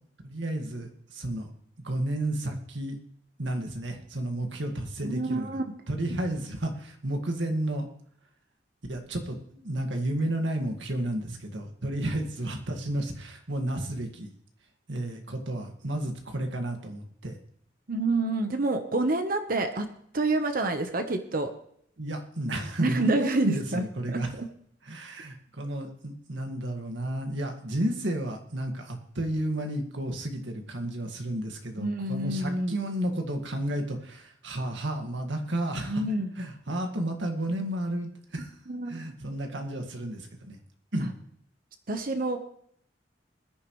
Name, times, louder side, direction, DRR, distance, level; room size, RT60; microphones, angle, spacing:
voice 1, 0.2-1.5 1.8-3.0 3.4-5.5 5.9-7.9 8.9-14.3 14.9-17.4 22.0-24.3 24.8-36.0 36.4-38.5 38.9-40.6 40.9-41.1, right 1 dB, 85° right, 4 dB, 2.0 m, -32 dB
voice 2, 5.0-5.7 17.9-19.9 20.1-21.5 22.8-23.8 24.1-24.5 31.8-32.8 35.8-36.3 38.7-39.0 41.0-41.1 41.9-42.4, right 2 dB, 50° right, 7 dB, 1.0 m, -28 dB
20.5 x 10.0 x 3.2 m, 0.66 s
head